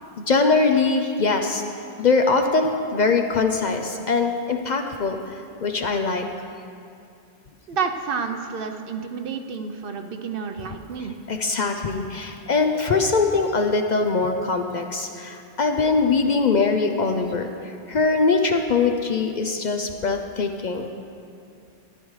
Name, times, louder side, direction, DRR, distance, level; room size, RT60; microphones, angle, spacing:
voice 1, 0.2-6.3 11.3-20.9, left 4 dB, 55° left, 4 dB, 0.6 m, -22 dB
voice 2, 7.7-11.1, right 5 dB, 65° right, 6 dB, 0.8 m, -29 dB
13.5 x 11.0 x 3.1 m, 2.5 s
omnidirectional pair, 1.1 m